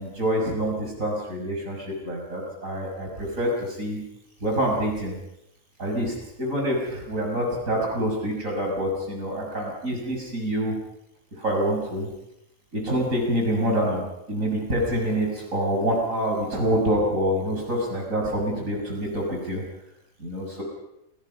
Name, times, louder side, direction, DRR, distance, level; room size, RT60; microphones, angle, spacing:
voice 1, 0.0-4.0 4.4-5.2 5.8-10.8 11.4-12.1 12.7-14.0 14.3-19.6 20.2-20.6, equal, 70° right, 0 dB, 6.9 m, -26 dB
28.5 x 20.0 x 5.4 m, 0.81 s
omnidirectional pair, 1.4 m